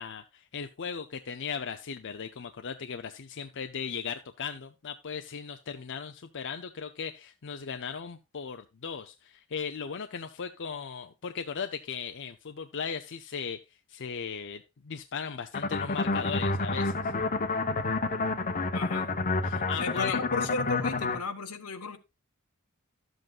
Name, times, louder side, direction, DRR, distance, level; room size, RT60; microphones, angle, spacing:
voice 1, 0.0-13.6 13.9-17.1 19.4-20.2, left 6 dB, 55° left, 0.6 m, -37 dB
sound 1, 15.5-21.2, left 3 dB, 40° left, 0.9 m, -29 dB
voice 2, 18.7-19.1 19.8-22.0, left 3 dB, 80° left, 1.4 m, -34 dB
12.5 x 7.8 x 2.5 m
head